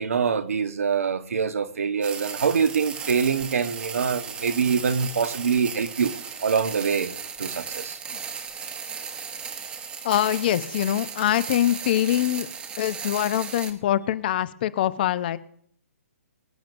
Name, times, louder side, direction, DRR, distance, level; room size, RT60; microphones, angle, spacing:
voice 1, 0.0-6.1 6.4-7.1 7.4-8.0, right 6 dB, 75° right, 1.2 m, -24 dB
sound 1, 2.0-13.7, right 6 dB, 15° right, 1.1 m, -36 dB
voice 2, 10.0-12.5 12.8-15.4, left 12 dB, 40° left, 0.8 m, -24 dB
24.5 x 8.9 x 2.6 m
hypercardioid pair, 145°, 8 cm